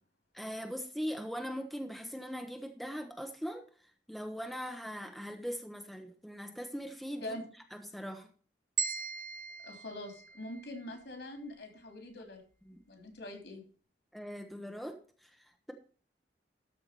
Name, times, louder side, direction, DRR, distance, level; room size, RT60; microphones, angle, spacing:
voice 1, 0.3-7.4 7.7-8.3 12.7-12.8 14.1-15.7, equal, ahead, 0.9 m, -41 dB
sound 1, 8.8-11.0, right 5 dB, 50° right, 1.9 m, -38 dB
voice 2, 9.6-12.4 12.9-13.6, left 1 dB, 65° left, 3.2 m, -43 dB
13.0 x 4.8 x 6.7 m
head